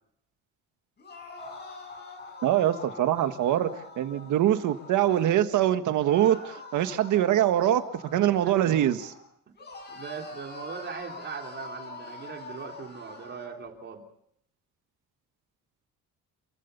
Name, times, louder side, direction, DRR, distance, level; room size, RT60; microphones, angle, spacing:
sound 1, 1.0-5.3 6.0-9.2 9.6-13.5, left 3 dB, 30° left, 6.2 m, -44 dB
voice 1, 2.4-3.7 4.0-7.8 8.1-9.1, right 12 dB, 70° right, 9 dB, 1.7 m, -23 dB
voice 2, 8.1-8.7 9.5-9.6 9.9-14.0, right 6 dB, 35° right, 2 dB, 3.3 m, -40 dB
28.0 x 15.5 x 6.9 m, 0.73 s
cardioid pair, 175°, 32 cm